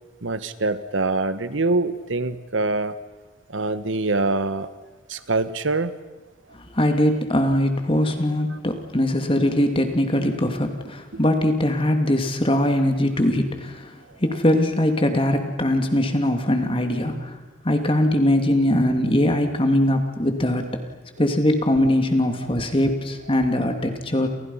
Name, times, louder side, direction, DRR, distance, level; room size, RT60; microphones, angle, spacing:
voice 1, 0.2-2.9 3.5-4.7 5.1-5.9, right 3 dB, 75° right, 12 dB, 1.4 m, -24 dB
voice 2, 6.5-17.3 17.6-20.8 21.2-24.3, left 1 dB, 25° left, 5 dB, 2.8 m, -21 dB
30.0 x 29.0 x 5.7 m, 1.1 s
head